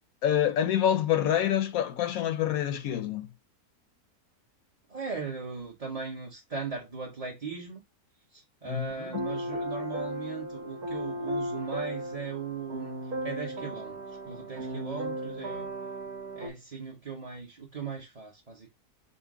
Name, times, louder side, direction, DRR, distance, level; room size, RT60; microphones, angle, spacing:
voice 1, 0.2-3.3 8.6-9.3, left 10 dB, 70° left, 1.0 m, -27 dB
voice 2, 4.9-7.8 8.3-12.9 13.2-15.7 16.3-18.7, right 5 dB, 30° right, 0.9 m, -38 dB
sound 1, 9.0-16.5, right 1 dB, 80° right, 1.7 m, -36 dB
5.3 x 2.1 x 3.6 m
omnidirectional pair, 1.6 m